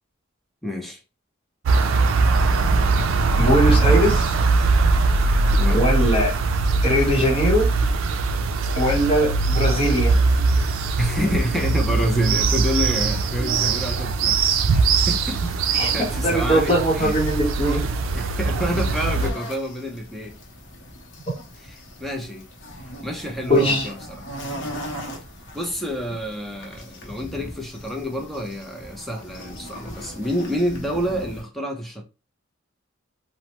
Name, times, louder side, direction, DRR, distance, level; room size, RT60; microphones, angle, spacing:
voice 1, 0.6-1.0 5.5-5.8 11.0-14.4 15.1-15.5 15.9-17.1 18.1-20.3 21.6-21.7 22.0-22.4 23.0-24.3 25.5-32.0, equal, ahead, 0.5 m, -28 dB
sound 1, 1.7-19.3, right 3 dB, 80° right, 0.4 m, -21 dB
voice 2, 3.4-4.4 5.7-6.3 6.8-7.7 8.7-10.1 15.7-15.9 16.2-17.8 21.3-21.4 23.5-23.9, equal, 25° left, 0.9 m, -20 dB
sound 2, 14.3-31.4, right 1 dB, 70° left, 0.7 m, -38 dB
3.1 x 2.0 x 2.9 m
head